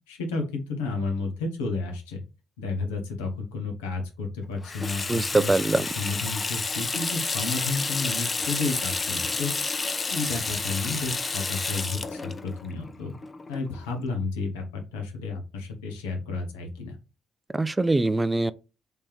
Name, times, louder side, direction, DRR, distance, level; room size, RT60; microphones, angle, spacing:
voice 1, 0.1-2.2 2.6-9.5 10.1-13.1 13.5-17.0, left 3 dB, 85° left, 0.9 m, -32 dB
Water tap faucet / Sink (filling or washing), 4.6-13.9, left 3 dB, 35° left, 0.5 m, -30 dB
voice 2, 5.1-5.9 17.5-18.5, right 2 dB, 20° right, 0.3 m, -23 dB
3.4 x 2.9 x 3.3 m
hypercardioid pair, 50°, 0 cm